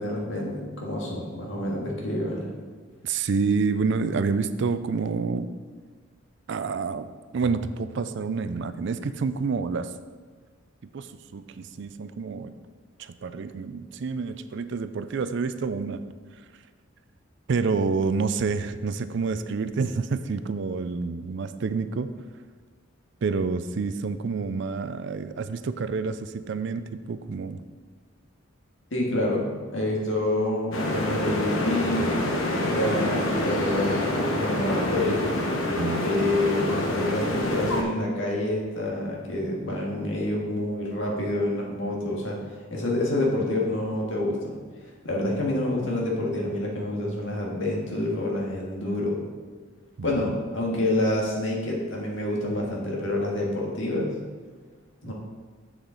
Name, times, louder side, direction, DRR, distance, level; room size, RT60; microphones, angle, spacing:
voice 1, 0.0-2.5 28.9-29.5 29.7-32.1 32.7-35.2 36.0-42.4 42.7-44.6 45.0-49.2 50.0-54.1 55.0-55.1, left 1 dB, 65° left, -2 dB, 1.8 m, -27 dB
voice 2, 3.0-5.5 6.5-9.9 10.9-11.1 11.3-12.5 13.0-16.0 17.5-22.1 23.2-27.6 35.8-36.1 50.0-50.2 55.1-55.2, right 4 dB, 60° right, 12 dB, 0.4 m, -28 dB
sound 1, 30.7-37.8, left 1 dB, 85° left, 1.1 m, -26 dB
7.2 x 7.1 x 3.9 m, 1.5 s
head